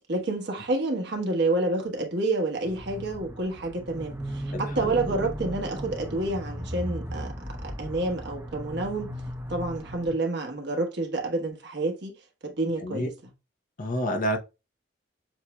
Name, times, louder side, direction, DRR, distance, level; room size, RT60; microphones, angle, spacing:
voice 1, 0.1-7.3 7.6-9.1 9.5-12.1 12.4-13.1, right 2 dB, 65° right, 1.2 m, -29 dB
sound 1, 2.6-10.1, equal, 10° right, 0.7 m, -36 dB
voice 2, 4.5-5.2 12.8-13.1 13.8-14.4, equal, 45° left, 0.8 m, -29 dB
7.2 x 2.7 x 2.3 m
head